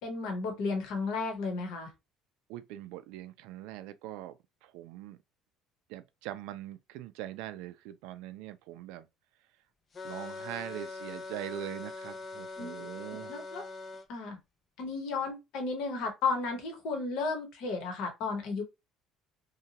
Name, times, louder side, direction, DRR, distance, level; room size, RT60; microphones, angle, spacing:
voice 1, 0.0-1.9 12.6-12.9 13.3-13.6 14.1-14.4 14.8-18.6, left 4 dB, 65° left, 0.9 m, -33 dB
voice 2, 2.5-4.3 4.6-5.2 5.9-9.1 10.0-13.3, right 12 dB, 85° right, 0.3 m, -42 dB
sound 1, 9.9-14.1, left 3 dB, 25° left, 0.3 m, -42 dB
2.8 x 2.2 x 2.8 m
cardioid pair, 160°, 0 cm